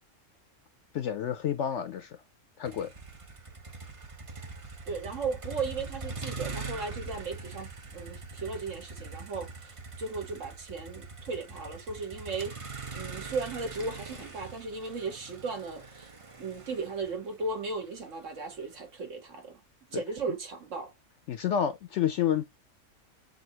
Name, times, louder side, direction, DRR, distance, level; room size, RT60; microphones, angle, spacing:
voice 1, 0.9-2.2 2.6-2.9 19.9-20.0 21.3-22.4, left 9 dB, 65° left, 0.8 m, -29 dB
Motor vehicle (road), 2.6-18.8, right 3 dB, 30° right, 0.8 m, -43 dB
voice 2, 4.9-12.5 12.9-16.1 16.4-19.6 19.9-20.9, right 4 dB, 65° right, 1.7 m, -36 dB
6.1 x 2.7 x 2.8 m
omnidirectional pair, 1.4 m